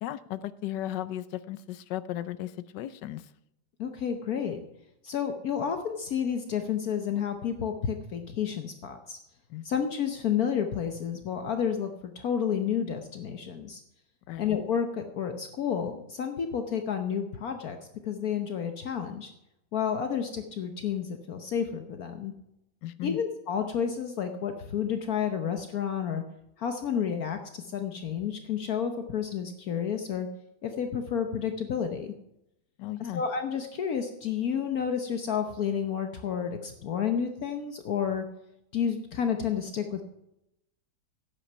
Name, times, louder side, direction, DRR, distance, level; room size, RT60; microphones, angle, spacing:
voice 1, 0.0-3.3 9.5-9.7 14.3-14.5 22.8-23.2 32.8-33.2, left 13 dB, 85° left, 15 dB, 1.3 m, -35 dB
voice 2, 3.8-4.6 5.0-9.2 9.6-13.8 14.4-17.8 18.0-19.3 19.7-22.3 23.0-26.2 26.6-30.3 30.6-32.1 33.1-38.2 38.7-40.0, left 7 dB, 60° left, 6 dB, 1.3 m, -30 dB
11.0 x 8.9 x 5.4 m, 0.82 s
omnidirectional pair, 1.8 m